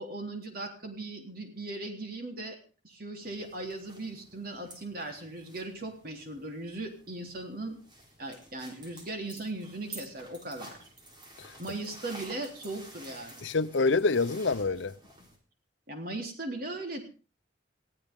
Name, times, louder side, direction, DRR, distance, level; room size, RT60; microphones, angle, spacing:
voice 1, 0.0-2.6 2.8-7.8 8.2-10.8 11.6-13.3 15.9-17.0, right 2 dB, 50° right, 3.7 m, -38 dB
sound 1, 3.2-15.4, right 1 dB, 25° right, 3.9 m, -51 dB
voice 2, 13.4-14.9, left 3 dB, 85° left, 0.8 m, -26 dB
20.5 x 14.5 x 3.8 m
head